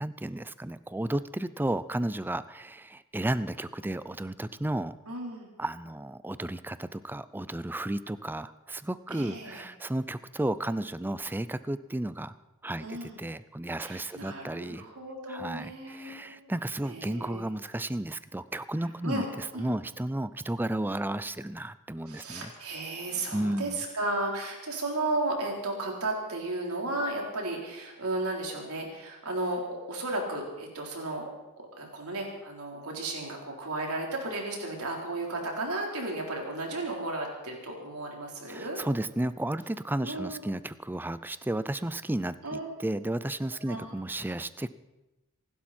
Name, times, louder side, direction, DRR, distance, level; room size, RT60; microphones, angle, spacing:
voice 1, 0.0-4.9 5.6-12.3 12.6-14.8 15.3-22.5 23.3-23.8 38.5-44.7, right 1 dB, 10° right, 15 dB, 0.5 m, -33 dB
voice 2, 5.1-5.5 9.1-9.6 12.8-13.2 13.8-16.5 16.9-17.4 19.0-19.3 19.5-19.7 22.1-31.3 31.8-38.8 40.0-40.4 42.4-42.7 43.7-43.8, right 2 dB, 75° right, 0 dB, 4.1 m, -34 dB
26.5 x 12.0 x 4.4 m, 1.0 s
head